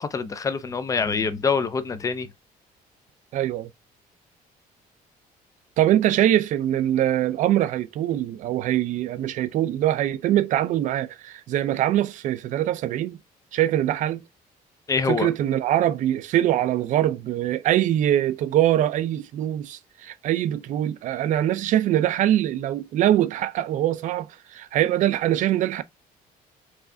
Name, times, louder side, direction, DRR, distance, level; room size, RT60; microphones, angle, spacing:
voice 1, 0.0-2.3 14.9-15.3, left 5 dB, 20° left, 0.4 m, -25 dB
voice 2, 3.3-3.7 5.8-13.2 13.5-14.2 15.1-25.8, right 12 dB, 55° right, 0.5 m, -23 dB
4.8 x 3.2 x 2.6 m
cardioid pair, 165°, 16 cm